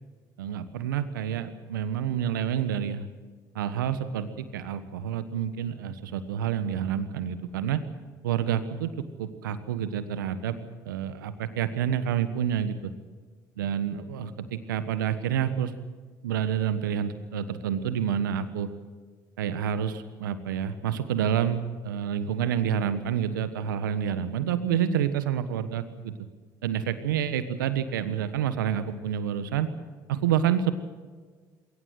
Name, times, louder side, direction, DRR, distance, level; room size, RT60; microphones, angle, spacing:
voice 1, 0.4-3.1 3.5-7.8 8.2-8.9 9.2-10.6 10.8-12.9 13.6-15.7 16.2-18.7 19.4-26.1 26.6-29.7 30.1-30.7, right 9 dB, 90° right, 12 dB, 1.4 m, -28 dB
21.5 x 18.0 x 7.9 m, 1.5 s
hypercardioid pair, 60°, 10 cm